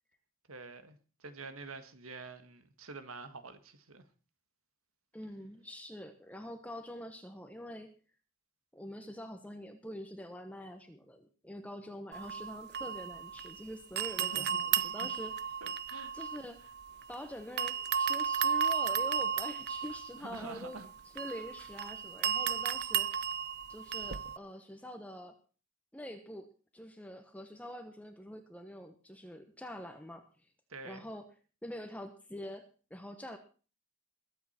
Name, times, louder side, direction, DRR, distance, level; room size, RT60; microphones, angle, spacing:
voice 1, 0.5-4.0 14.2-15.1 15.6-16.1 20.2-20.9 30.7-31.1, right 3 dB, 80° right, 1.7 m, -47 dB
voice 2, 5.1-7.9 8.7-15.3 16.1-16.6 17.1-20.8 21.1-23.1 23.7-25.4 25.9-26.5 26.7-30.2 30.8-31.3 31.6-33.4, equal, 5° left, 1.1 m, -45 dB
sound 1, 12.1-13.6 14.0-17.2 17.6-24.4, right 8 dB, 50° right, 0.6 m, -34 dB
21.5 x 8.4 x 4.3 m
head